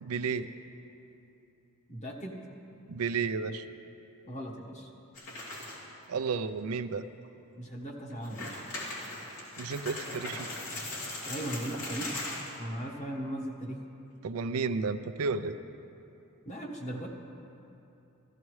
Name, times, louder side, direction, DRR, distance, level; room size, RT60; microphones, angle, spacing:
voice 1, 0.0-0.5 2.9-3.7 6.1-7.0 9.6-10.5 14.2-15.6, right 5 dB, 80° right, 10 dB, 0.4 m, -32 dB
voice 2, 1.9-2.4 4.2-4.9 7.6-8.6 11.2-12.1 12.6-13.8 16.4-17.1, right 1 dB, 35° left, -1 dB, 1.3 m, -38 dB
sound 1, 5.2-5.9 6.3-6.4 7.0-7.1 8.1-12.6, left 2 dB, 75° left, 2.9 m, -39 dB
14.5 x 14.0 x 3.2 m, 2.8 s
head